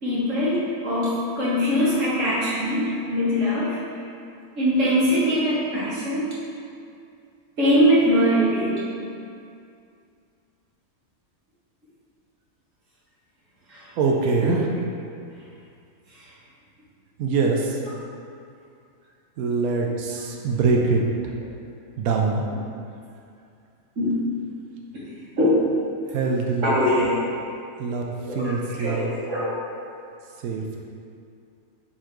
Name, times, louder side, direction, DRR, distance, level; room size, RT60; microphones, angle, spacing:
voice 1, 0.0-3.8 4.6-6.3 7.6-8.8 13.7-13.9 14.4-14.5 16.1-16.2 17.7-17.8 24.0-24.1 25.4-25.5 26.6-27.2 28.3-29.5, equal, 55° right, -9 dB, 1.9 m, -22 dB
voice 2, 14.0-14.6 17.2-17.8 19.4-21.1 22.0-22.4 26.1-26.8 27.8-29.1 30.4-30.9, right 4 dB, 75° right, 0 dB, 1.1 m, -24 dB
7.3 x 4.3 x 3.0 m, 2.4 s
omnidirectional pair, 1.6 m